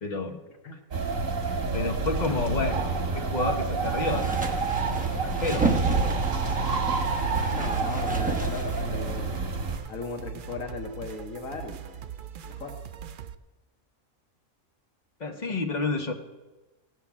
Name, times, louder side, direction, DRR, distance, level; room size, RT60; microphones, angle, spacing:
voice 1, 0.0-0.4 1.7-2.9 3.1-4.6 5.2-6.2 7.4-7.5 15.2-16.1, left 3 dB, 35° left, 4 dB, 1.1 m, -30 dB
sound 1, 0.9-9.8, right 4 dB, 80° right, 1.8 m, -28 dB
voice 2, 2.3-3.0 7.5-9.4 9.9-12.0 12.5-12.7, left 4 dB, 80° left, 3 dB, 1.5 m, -38 dB
sound 2, 3.8-9.3, right 2 dB, 5° right, 1.0 m, -31 dB
sound 3, 6.7-13.3, right 9 dB, 65° right, 0.5 m, -41 dB
17.0 x 5.7 x 7.3 m, 1.2 s
omnidirectional pair, 1.4 m